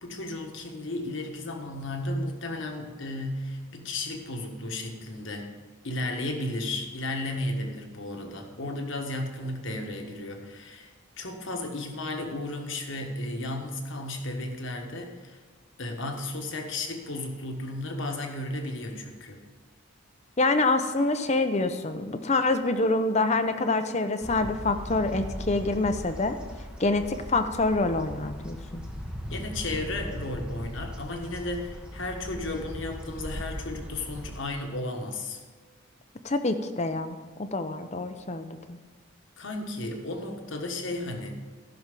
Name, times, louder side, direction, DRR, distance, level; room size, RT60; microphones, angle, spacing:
voice 1, 0.0-5.5 5.8-15.4 15.8-19.4 29.3-35.4 39.4-41.3, left 2 dB, 60° left, 3 dB, 1.4 m, -34 dB
voice 2, 20.4-26.4 26.8-28.8 36.2-38.6, left 2 dB, 30° left, 9 dB, 0.6 m, -26 dB
sound 1, 24.2-34.4, equal, 5° right, 0.9 m, -39 dB
14.5 x 6.1 x 5.3 m, 1.5 s
head